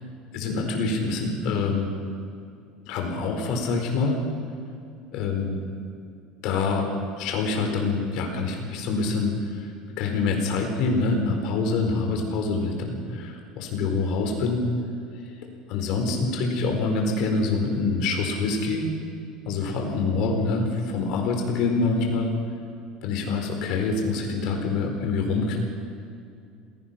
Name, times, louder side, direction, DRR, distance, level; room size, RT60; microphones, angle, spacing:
voice 1, 0.3-1.9 2.9-4.2 5.1-5.6 6.4-6.9 7.2-9.7 10.0-14.6 15.7-18.9 19.5-22.3 23.0-25.6, left 3 dB, 60° left, 3 dB, 4.4 m, -25 dB
27.5 x 17.5 x 6.0 m, 2.4 s
cardioid pair, 155°, 0 cm